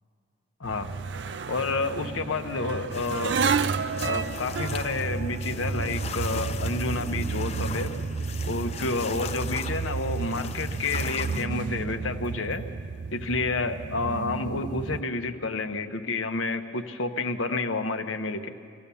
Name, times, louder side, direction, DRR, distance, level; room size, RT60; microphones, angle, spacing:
voice 1, 0.6-0.9 1.5-3.4 4.0-8.0 8.5-12.6 13.1-18.5, left 3 dB, 90° left, 7 dB, 1.0 m, -30 dB
sound 1, 0.6-15.0, right 5 dB, 60° right, 0.5 m, -31 dB
sound 2, 2.9-11.5, left 5 dB, 30° left, 0.6 m, -40 dB
24.0 x 15.5 x 7.0 m, 2.3 s
head